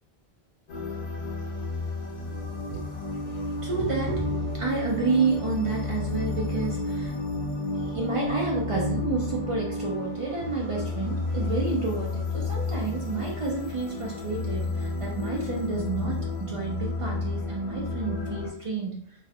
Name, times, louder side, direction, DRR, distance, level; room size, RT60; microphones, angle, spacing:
sound 1, 0.7-18.5, left 3 dB, 50° left, 0.6 m, -31 dB
voice 1, 3.4-7.2 7.7-19.3, right 4 dB, 60° right, -2 dB, 0.3 m, -30 dB
2.3 x 2.0 x 2.7 m, 0.68 s
omnidirectional pair, 1.1 m